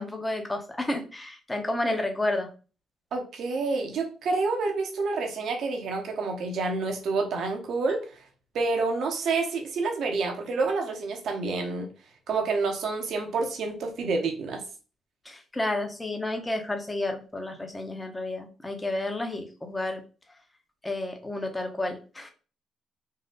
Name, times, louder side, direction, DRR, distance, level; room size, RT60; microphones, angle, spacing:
voice 1, 0.0-2.5 15.2-20.0 20.8-22.3, left 2 dB, 15° left, 5 dB, 1.0 m, -31 dB
voice 2, 3.1-8.0 8.5-11.9 12.3-14.6, right 3 dB, 70° right, 3 dB, 1.1 m, -28 dB
4.1 x 2.3 x 4.0 m, 0.35 s
cardioid pair, 90°, 0 cm